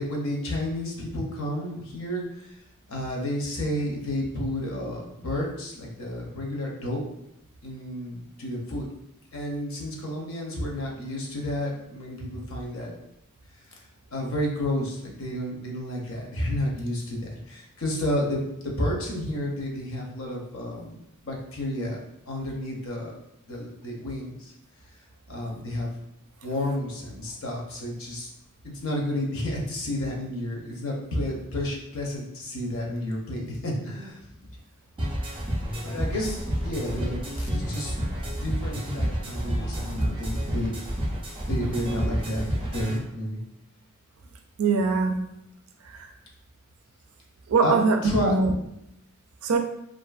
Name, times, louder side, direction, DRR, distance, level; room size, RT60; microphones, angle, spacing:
voice 1, 0.0-2.6 2.9-7.0 7.6-8.9 9.3-12.9 13.7-13.8 14.1-21.0 21.2-22.0 22.3-23.2 23.5-24.5 25.3-25.9 26.4-28.3 28.6-34.2 35.8-37.9 38.3-40.8 41.5-42.5 42.7-43.4 47.6-47.8 48.0-48.4, left 1 dB, 65° left, -1 dB, 0.7 m, -31 dB
sound 1, 35.0-43.0, equal, 25° right, 0.4 m, -29 dB
voice 2, 44.6-45.2 45.8-46.1 47.5-48.5 49.4-49.6, right 4 dB, 80° right, 5 dB, 0.4 m, -22 dB
2.5 x 2.5 x 2.3 m, 0.80 s
head